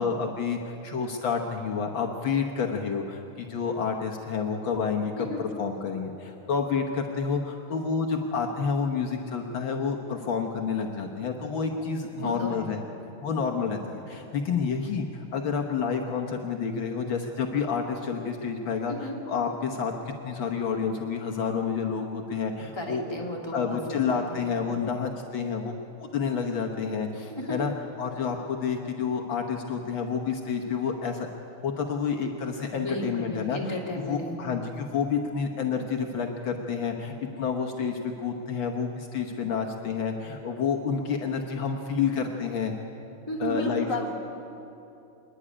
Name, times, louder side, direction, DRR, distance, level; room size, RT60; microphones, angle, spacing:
voice 1, 0.0-12.8 13.2-18.9 19.3-23.0 23.5-25.7 26.1-27.7 28.0-31.3 31.6-42.7 43.4-43.9, left 6 dB, 65° left, 2 dB, 1.8 m, -29 dB
voice 2, 12.1-12.7 18.9-19.2 22.7-24.4 27.3-27.6 32.7-34.4 43.3-44.0, left 1 dB, 10° left, -2 dB, 2.5 m, -34 dB
26.5 x 10.0 x 9.8 m, 2.8 s
omnidirectional pair, 2.4 m